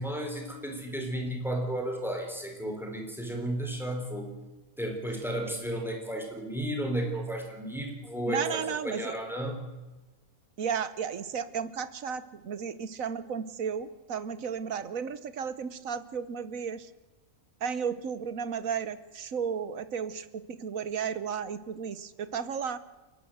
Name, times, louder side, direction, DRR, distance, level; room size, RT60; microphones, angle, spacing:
voice 1, 0.0-4.3 4.8-9.6, right 1 dB, ahead, 2 dB, 4.4 m, -33 dB
voice 2, 8.3-9.1 10.6-16.9 17.6-22.8, right 7 dB, 70° right, 14 dB, 1.5 m, -34 dB
29.5 x 11.5 x 8.0 m, 1.2 s
omnidirectional pair, 1.5 m